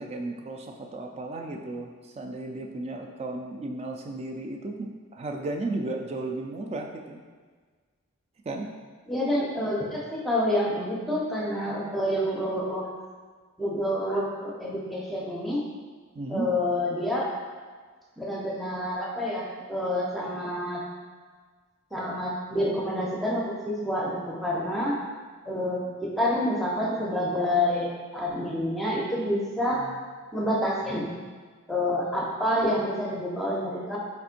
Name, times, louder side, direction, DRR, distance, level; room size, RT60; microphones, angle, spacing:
voice 1, 0.0-7.2 8.5-8.7 16.1-16.5 29.8-30.0, right 2 dB, 30° right, 2 dB, 0.4 m, -34 dB
voice 2, 9.1-12.9 13.6-15.6 16.3-17.3 18.2-20.8 21.9-25.0 25.5-29.8 30.3-31.1 31.7-34.0, left 1 dB, ahead, -4 dB, 0.7 m, -28 dB
4.4 x 4.2 x 2.5 m, 1.5 s
head